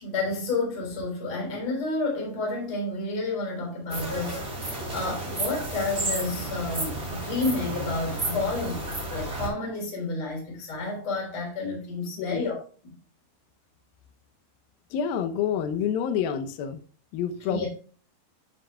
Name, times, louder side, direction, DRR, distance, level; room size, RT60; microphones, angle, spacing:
voice 1, 0.0-8.8 9.1-12.6 12.8-12.9 17.5-17.7, left 3 dB, 30° left, 4.0 m, -30 dB
sound 1, 3.9-9.5, right 1 dB, 20° right, 2.8 m, -32 dB
voice 2, 14.9-16.8 17.1-17.7, left 8 dB, 80° left, 2.2 m, -28 dB
12.5 x 6.3 x 2.3 m
omnidirectional pair, 5.2 m